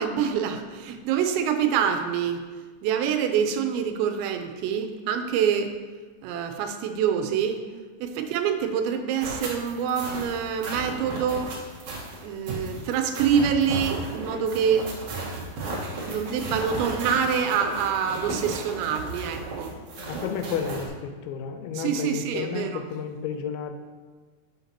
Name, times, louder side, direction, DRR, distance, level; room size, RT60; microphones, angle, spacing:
voice 1, 0.0-2.4 2.8-5.8 6.2-7.7 8.0-11.6 12.2-15.3 16.0-19.7 20.1-20.2 21.7-22.8, right 7 dB, 85° right, 6 dB, 2.8 m, -26 dB
sound 1, 9.2-20.9, right 2 dB, 70° right, 1.8 m, -35 dB
voice 2, 19.9-23.7, left 6 dB, 85° left, 6 dB, 3.1 m, -32 dB
12.0 x 6.5 x 2.8 m, 1.4 s
omnidirectional pair, 5.3 m